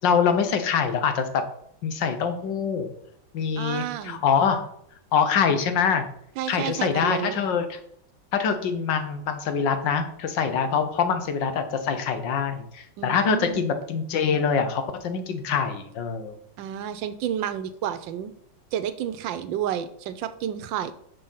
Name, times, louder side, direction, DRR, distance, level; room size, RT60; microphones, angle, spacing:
voice 1, 0.0-1.4 1.8-2.9 3.3-4.7 5.1-6.1 6.5-7.8 8.3-16.4, left 6 dB, 75° left, 8 dB, 1.6 m, -24 dB
voice 2, 3.6-4.2 6.4-7.4 13.0-13.6 16.6-18.3 18.7-20.9, right 10 dB, 85° right, 12 dB, 1.4 m, -30 dB
6.8 x 5.5 x 5.6 m, 0.69 s
omnidirectional pair, 2.0 m